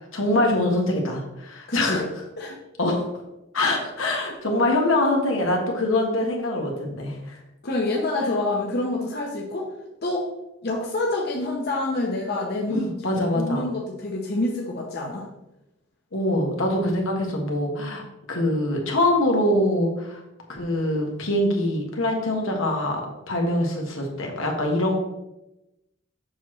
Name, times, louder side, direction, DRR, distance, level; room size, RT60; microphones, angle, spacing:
voice 1, 0.1-2.0 2.8-3.0 3.5-7.4 12.7-13.7 16.1-20.2 20.5-23.0 23.3-25.0, left 1 dB, 80° left, 1 dB, 1.4 m, -24 dB
voice 2, 1.7-2.1 2.4-2.6 7.6-9.6 10.0-10.3 10.6-12.8 13.2-15.3, left 2 dB, 50° left, -1 dB, 0.8 m, -27 dB
7.1 x 5.9 x 3.1 m, 0.93 s
head